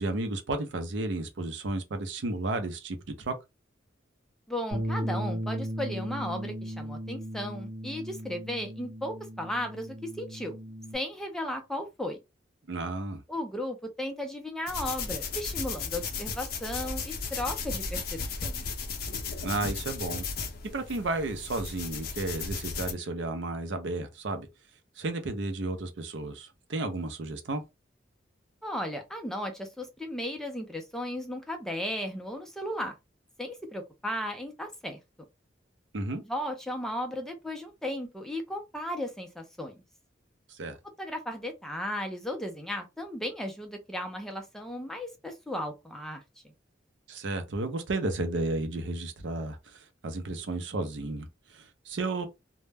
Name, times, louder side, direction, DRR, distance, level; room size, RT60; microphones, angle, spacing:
voice 1, 0.0-3.3 12.7-13.2 19.4-20.2 20.7-24.5 25.0-27.6 35.9-36.2 40.5-40.8 47.1-52.3, right 2 dB, 75° right, 0.6 m, -33 dB
voice 2, 4.5-10.6 10.9-12.2 13.3-18.7 28.6-32.9 33.4-35.0 36.2-39.8 41.0-46.2, left 1 dB, 5° left, 0.4 m, -35 dB
Bass guitar, 4.7-11.0, equal, 45° right, 0.9 m, -36 dB
sound 1, 14.7-22.9, left 4 dB, 50° left, 0.5 m, -35 dB
2.1 x 2.0 x 3.3 m
head